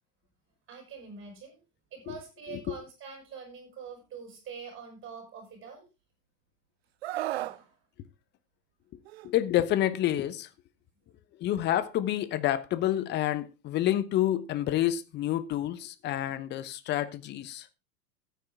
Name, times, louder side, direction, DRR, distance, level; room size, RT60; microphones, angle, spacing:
voice 1, 0.7-1.6 1.9-5.8 7.3-7.8, right 6 dB, 25° right, 6.7 m, -45 dB
Screaming, 7.0-7.6 9.1-9.3, right 15 dB, 40° right, 0.5 m, -33 dB
voice 2, 9.2-10.5 11.4-17.7, left 13 dB, 20° left, 0.9 m, -28 dB
14.0 x 9.2 x 3.6 m
figure-of-eight pair, 100°, 48 cm